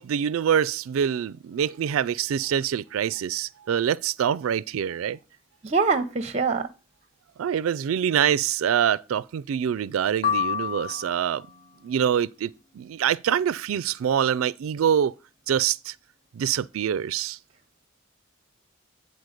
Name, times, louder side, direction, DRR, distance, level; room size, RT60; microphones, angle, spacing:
voice 1, 0.0-5.2 7.4-11.4 11.8-15.1 15.5-15.9 16.3-17.4, right 9 dB, 85° right, 0.3 m, -25 dB
voice 2, 5.6-6.7, right 4 dB, 30° right, 0.7 m, -24 dB
sound 1, 10.2-11.5, left 7 dB, 35° left, 0.3 m, -28 dB
9.7 x 4.2 x 6.5 m
head